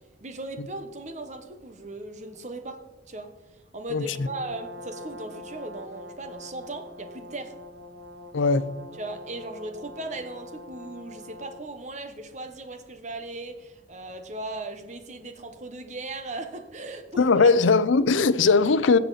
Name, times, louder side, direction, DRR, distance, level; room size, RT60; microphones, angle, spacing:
voice 1, 0.2-2.8 3.1-3.3 3.7-7.5 9.0-17.5, right 2 dB, 40° right, 1.1 m, -38 dB
voice 2, 3.9-4.3 8.3-8.7 17.2-19.0, left 4 dB, 90° left, 0.6 m, -20 dB
Brass instrument, 4.0-11.8, left 1 dB, 70° right, 1.1 m, -44 dB
15.5 x 8.0 x 4.0 m
head